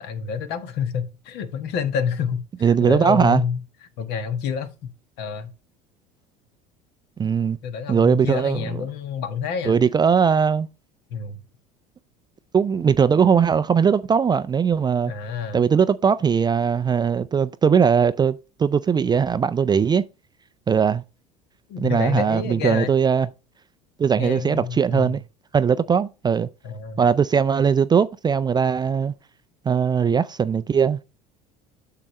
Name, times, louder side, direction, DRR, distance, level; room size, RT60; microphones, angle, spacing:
voice 1, 0.0-3.6 4.0-4.7 5.2-5.5 7.6-9.8 11.1-11.4 15.1-15.7 21.7-22.9 24.2-25.2 26.6-27.0, left 6 dB, 60° left, 1.3 m, -28 dB
voice 2, 2.6-3.4 7.2-7.6 7.9-8.6 9.6-10.7 12.5-15.1 15.5-20.0 20.7-21.0 21.8-23.3 24.0-25.2 25.5-26.5 27.0-29.1 29.7-31.0, right 6 dB, 20° right, 0.4 m, -19 dB
8.5 x 6.7 x 3.1 m
hypercardioid pair, 70°, 20 cm